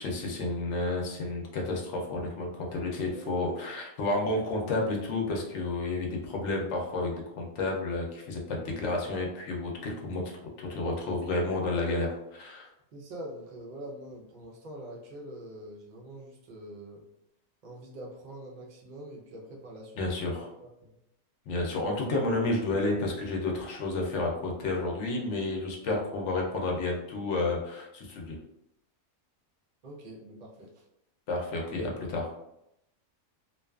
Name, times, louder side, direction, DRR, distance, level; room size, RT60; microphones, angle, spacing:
voice 1, 0.0-10.2 10.6-12.7 20.0-20.5 21.5-28.4 31.3-32.3, left 2 dB, 65° left, 0 dB, 0.8 m, -31 dB
voice 2, 3.1-3.6 12.9-17.0 17.6-20.0 20.3-20.9 29.8-30.8, right 1 dB, 55° right, -1 dB, 0.5 m, -44 dB
2.6 x 2.3 x 2.3 m, 0.82 s
omnidirectional pair, 1.5 m